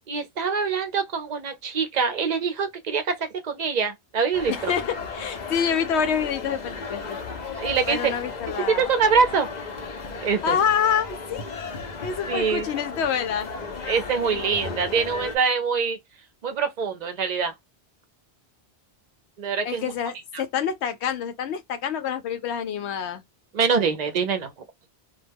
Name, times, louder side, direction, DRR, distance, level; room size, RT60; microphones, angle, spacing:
voice 1, 0.1-4.5 7.6-8.1 8.7-9.5 10.2-10.6 12.3-12.7 13.9-16.0 16.4-17.5 19.4-19.8 23.5-24.5, right 5 dB, 50° right, 0.6 m, -24 dB
sound 1, 4.3-15.4, left 4 dB, 50° left, 0.7 m, -35 dB
voice 2, 4.5-7.2 7.9-8.9 10.4-13.5 14.2-14.4 19.6-23.2, left 7 dB, 90° left, 0.9 m, -27 dB
2.3 x 2.1 x 3.4 m
omnidirectional pair, 1.1 m